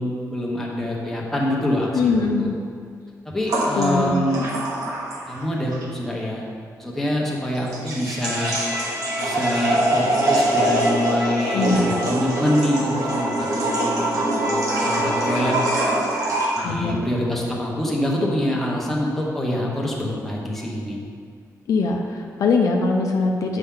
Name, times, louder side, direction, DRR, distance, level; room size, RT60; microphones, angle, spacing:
voice 1, 0.0-2.1 2.4-2.5 3.2-4.6 5.3-6.4 6.8-8.5 9.2-15.5 16.6-21.0, left 1 dB, 5° left, -3 dB, 1.0 m, -25 dB
voice 2, 1.9-2.5 3.7-4.1 11.5-12.0 16.6-17.0 21.7-23.6, left 4 dB, 65° left, 2 dB, 0.6 m, -21 dB
sound 1, 3.5-5.4 5.7-5.8 7.6-16.7, right 1 dB, 60° right, 1.3 m, -23 dB
Trumpet, 8.2-15.9, left 1 dB, 80° right, 1.7 m, -32 dB
7.9 x 5.7 x 3.7 m, 2.2 s
wide cardioid pair, 170°, 6 cm